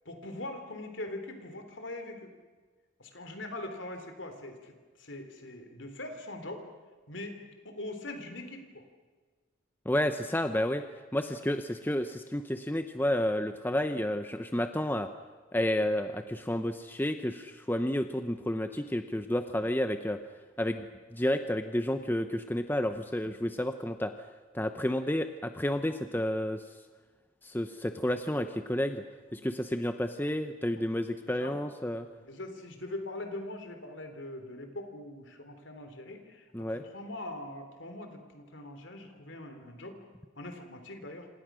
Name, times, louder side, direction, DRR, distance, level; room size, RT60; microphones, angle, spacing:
voice 1, 0.1-2.3 3.0-6.7 7.1-8.8 11.2-11.4 29.3-29.5 30.7-30.8 31.3-31.6 32.2-40.0 40.4-41.3, left 1 dB, 60° left, 6 dB, 3.6 m, -42 dB
voice 2, 9.9-10.8 11.1-15.1 15.5-20.2 20.6-20.9 21.1-24.1 24.5-26.6 27.4-29.0 29.3-32.1 36.5-36.8, left 1 dB, 10° left, 8 dB, 0.8 m, -30 dB
27.5 x 27.0 x 6.3 m, 1.4 s
head